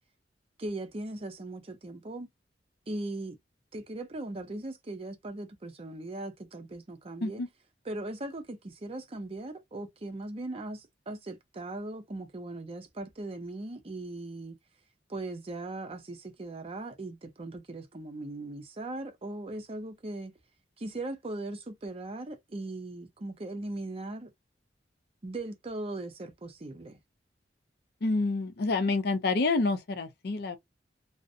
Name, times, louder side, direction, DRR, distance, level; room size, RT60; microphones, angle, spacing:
voice 1, 0.6-2.3 2.9-3.4 3.7-7.4 7.8-14.6 15.1-20.3 20.8-24.3 25.2-27.0, right 2 dB, 35° right, 0.5 m, -39 dB
voice 2, 28.0-30.6, left 3 dB, 65° left, 0.5 m, -28 dB
2.5 x 2.0 x 2.5 m
head